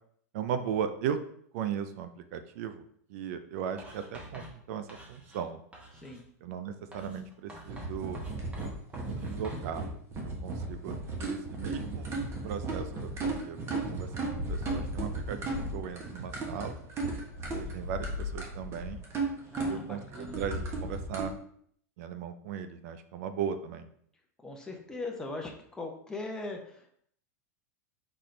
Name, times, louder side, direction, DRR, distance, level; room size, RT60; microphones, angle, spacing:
voice 1, 0.3-1.2 1.5-2.8 3.1-5.6 6.4-8.2 9.1-9.8 10.2-12.1 12.4-13.6 13.9-16.8 17.5-19.0 19.6-21.3 22.0-23.9, right 8 dB, 65° right, 10 dB, 0.5 m, -37 dB
Writing, 3.8-5.5 5.7-6.3 6.9-9.7, right 1 dB, 15° right, 1.2 m, -48 dB
sound 1, 7.6-21.3, right 2 dB, 30° right, 1.2 m, -35 dB
voice 2, 19.5-20.4 24.4-27.0, left 2 dB, 10° left, 1 dB, 0.7 m, -40 dB
4.3 x 3.8 x 3.2 m, 0.64 s
hypercardioid pair, 115°, 9 cm